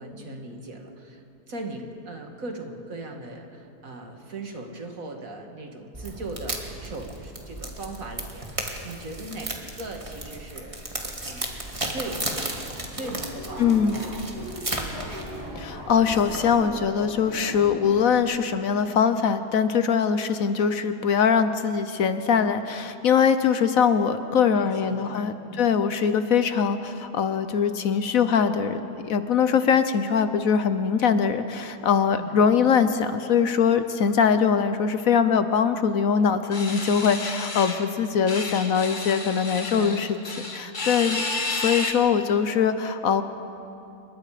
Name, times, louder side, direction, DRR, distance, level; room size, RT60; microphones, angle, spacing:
voice 1, 0.0-10.9 11.2-11.6 11.9-12.6 12.9-15.3 24.5-25.7 32.1-32.4 39.7-40.0 40.9-41.2, right 2 dB, 60° right, 3 dB, 2.3 m, -39 dB
sound 1, 5.9-16.7, right 1 dB, 20° right, 2.0 m, -35 dB
Subway metro underground, 12.6-18.2, equal, 10° left, 7.4 m, -39 dB
voice 2, 13.6-14.0 15.6-40.1 40.5-41.2 41.6-43.2, left 6 dB, 65° left, 10 dB, 1.2 m, -22 dB
sound 2, 36.5-37.8 38.3-41.9, left 3 dB, 30° left, 1.6 m, -31 dB
27.5 x 22.0 x 5.0 m, 2.7 s
omnidirectional pair, 1.7 m